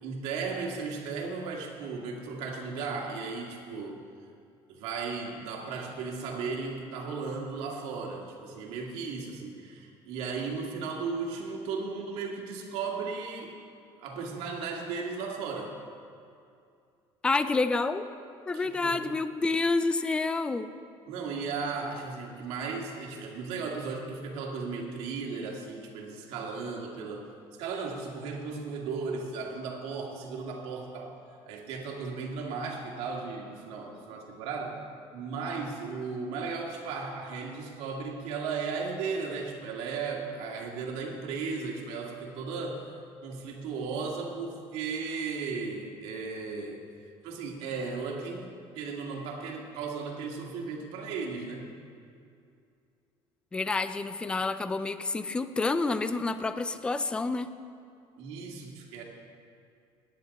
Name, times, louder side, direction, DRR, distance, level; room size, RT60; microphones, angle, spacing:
voice 1, 0.0-4.0 4.7-13.6 14.0-15.8 18.5-19.1 21.1-27.3 27.6-31.2 31.5-34.8 35.1-42.9 43.2-46.8 47.2-51.7 58.2-59.0, right 4 dB, 85° right, 0 dB, 2.0 m, -36 dB
voice 2, 17.2-18.0 18.5-20.7 53.5-57.5, left 3 dB, 10° left, 12 dB, 0.3 m, -28 dB
16.5 x 10.0 x 4.1 m, 2.5 s
cardioid pair, 175°, 10 cm